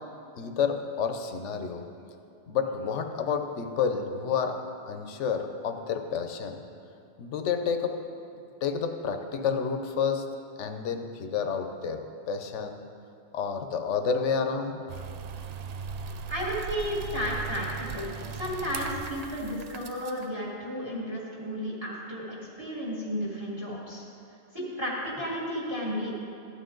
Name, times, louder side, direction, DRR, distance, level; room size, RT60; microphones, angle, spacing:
voice 1, 0.4-1.8 2.5-4.6 4.9-6.6 7.2-8.0 8.6-10.2 10.6-12.0 12.3-12.8 13.3-14.8, left 6 dB, 80° left, 6 dB, 1.1 m, -29 dB
sound 1, 14.9-20.3, right 6 dB, 75° right, 0.3 m, -38 dB
voice 2, 16.3-24.0 24.5-26.1, equal, 20° right, -5 dB, 1.8 m, -33 dB
13.5 x 8.5 x 3.8 m, 2.6 s
omnidirectional pair, 1.2 m